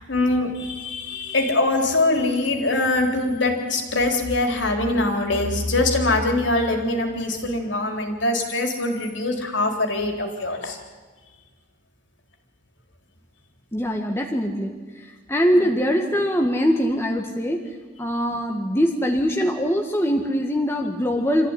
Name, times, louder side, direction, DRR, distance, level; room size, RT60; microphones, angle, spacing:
voice 1, 0.0-10.8 15.6-15.7, left 2 dB, 65° left, 2 dB, 3.8 m, -23 dB
voice 2, 13.7-17.6 18.0-21.5, equal, 10° left, 1 dB, 1.6 m, -22 dB
26.5 x 14.5 x 9.9 m, 1.3 s
head